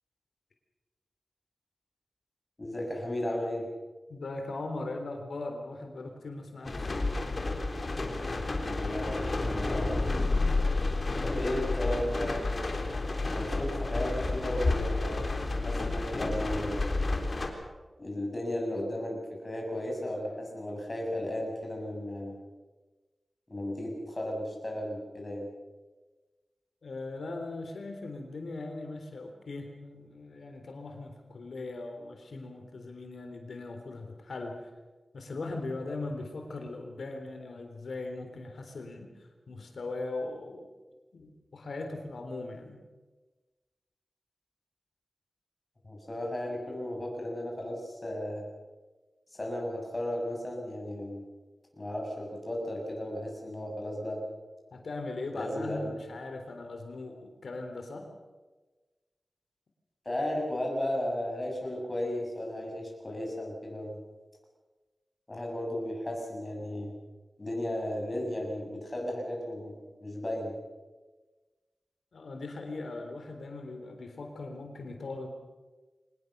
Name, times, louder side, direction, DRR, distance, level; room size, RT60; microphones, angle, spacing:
voice 1, 2.6-3.7 8.6-10.0 11.2-12.4 13.3-15.2 15.6-16.8 18.0-22.3 23.5-25.5 45.8-48.4 49.3-51.2 51.7-54.2 55.3-55.9 60.1-64.0 65.3-66.9 67.4-69.8 70.0-70.5, left 1 dB, 30° left, -1 dB, 7.4 m, -34 dB
voice 2, 4.1-6.9 26.8-34.7 35.1-40.7 41.1-42.8 54.7-58.1 72.1-75.3, left 2 dB, 85° left, 4 dB, 3.7 m, -39 dB
sound 1, 6.6-17.5, left 2 dB, 45° left, 3.6 m, -30 dB
24.5 x 19.5 x 6.8 m, 1.2 s
wide cardioid pair, 100°, 0 cm